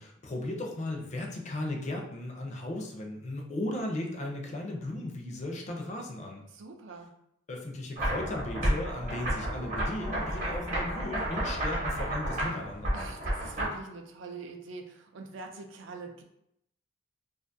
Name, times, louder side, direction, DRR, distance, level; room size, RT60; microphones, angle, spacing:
voice 1, 0.0-6.4 7.5-13.0, left 1 dB, 35° left, 1 dB, 0.4 m, -36 dB
voice 2, 6.5-7.1 12.9-16.2, right 3 dB, 70° right, 3 dB, 0.4 m, -44 dB
sound 1, 8.0-13.7, right 1 dB, 40° right, 0.8 m, -31 dB
2.4 x 2.3 x 2.6 m, 0.77 s
head